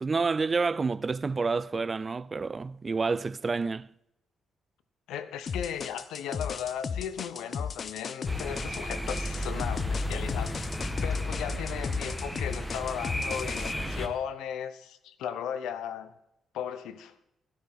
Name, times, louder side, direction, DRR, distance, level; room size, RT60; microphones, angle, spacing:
voice 1, 0.0-3.9, right 4 dB, 30° right, 0.3 m, -29 dB
voice 2, 5.1-16.1 16.5-17.1, left 9 dB, 85° left, 0.8 m, -36 dB
sound 1, 5.5-13.7, left 6 dB, 45° left, 0.4 m, -35 dB
sound 2, 8.3-14.1, left 1 dB, 5° left, 1.3 m, -33 dB
13.0 x 11.5 x 3.7 m
cardioid pair, 90°, 0 cm